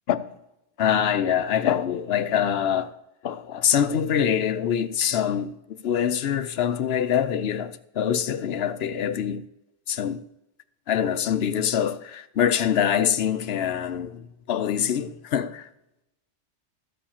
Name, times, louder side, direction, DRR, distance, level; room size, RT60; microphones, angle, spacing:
voice 1, 0.8-2.9 3.2-9.4 9.9-10.2 10.9-15.7, left 9 dB, 65° left, 0.8 m, -24 dB
13.5 x 5.1 x 7.1 m
omnidirectional pair, 1.2 m